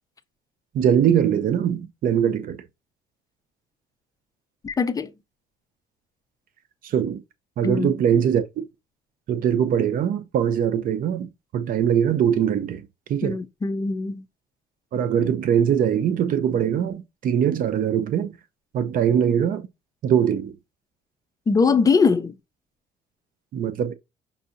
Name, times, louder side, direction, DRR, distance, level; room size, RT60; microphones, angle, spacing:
voice 1, 0.7-2.6 6.8-7.2 7.6-8.6 9.3-13.4 14.9-18.3 18.7-19.7 20.0-20.6 23.5-23.9, right 9 dB, 55° right, 0.6 m, -22 dB
voice 2, 4.6-5.1 7.6-7.9 13.2-14.2 21.5-22.4, left 4 dB, 20° left, 0.5 m, -21 dB
5.4 x 2.7 x 2.5 m
cardioid pair, 110°, 17 cm